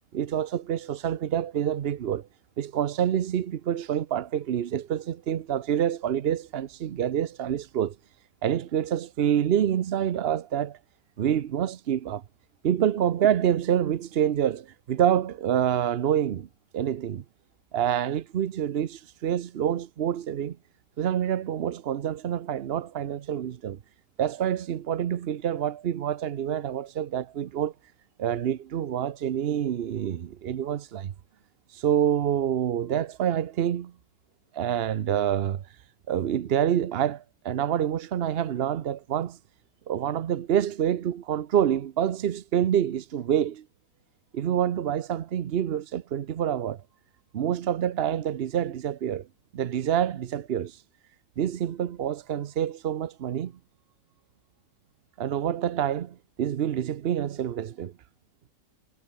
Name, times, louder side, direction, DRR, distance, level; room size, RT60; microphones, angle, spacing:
voice 1, 0.1-2.3 2.6-8.0 8.4-10.8 11.2-12.2 12.6-16.5 16.7-17.2 17.7-20.6 21.0-23.8 24.2-27.7 28.2-31.1 31.7-33.9 34.5-35.6 36.1-39.4 39.9-43.6 44.3-46.8 47.3-49.3 49.5-50.8 51.4-53.5 55.2-57.9, right 10 dB, 70° right, 0.5 m, -27 dB
omnidirectional pair, 1.9 m